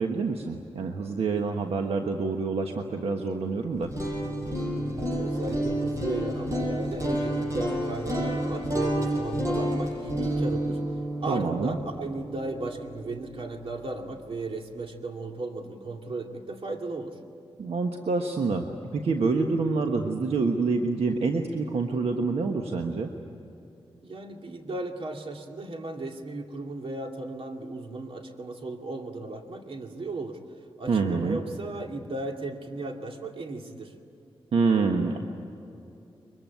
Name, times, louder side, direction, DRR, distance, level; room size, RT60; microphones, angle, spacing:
voice 1, 0.0-3.9 11.3-11.8 17.6-18.7 18.9-23.1 30.9-31.4 34.5-35.2, right 4 dB, 85° right, 3 dB, 1.4 m, -27 dB
sound 1, 3.7-13.8, equal, 30° right, 7.7 m, -30 dB
voice 2, 5.0-10.8 11.2-17.2 24.0-30.4 30.8-33.9, right 2 dB, 65° right, 3 dB, 2.4 m, -35 dB
23.5 x 22.5 x 9.4 m, 2.7 s
wide cardioid pair, 85°, 10 cm